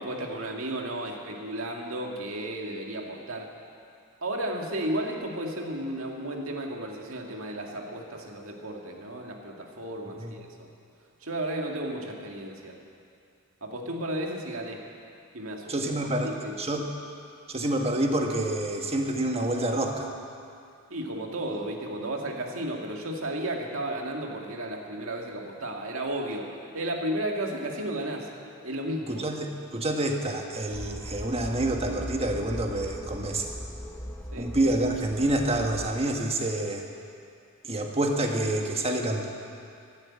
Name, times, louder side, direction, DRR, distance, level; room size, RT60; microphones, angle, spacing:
voice 1, 0.0-3.5 4.2-10.7 11.2-12.8 13.6-14.8 15.3-16.6 20.9-28.3 28.6-29.2 34.3-34.5, right 1 dB, 70° right, 1 dB, 2.1 m, -33 dB
voice 2, 15.7-16.3 16.6-16.9 17.5-20.1 29.1-33.5 34.4-36.8 37.6-39.3, right 1 dB, 30° right, 2 dB, 1.5 m, -27 dB
sound 1, 30.7-36.0, equal, 10° left, 1.0 m, -39 dB
14.0 x 12.0 x 8.7 m, 2.4 s
head